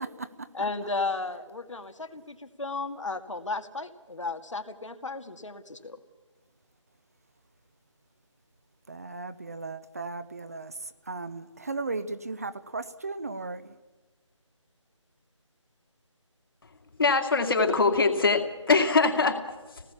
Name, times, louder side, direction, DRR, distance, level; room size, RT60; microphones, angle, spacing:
voice 1, 0.5-6.0, left 3 dB, 70° left, 7 dB, 2.2 m, -34 dB
voice 2, 8.9-10.7 11.1-13.7, right 3 dB, 30° right, 12 dB, 0.7 m, -36 dB
voice 3, 17.0-19.8, left 4 dB, 45° left, 5 dB, 2.4 m, -23 dB
26.5 x 19.0 x 7.1 m, 1.3 s
figure-of-eight pair, 165°, 16 cm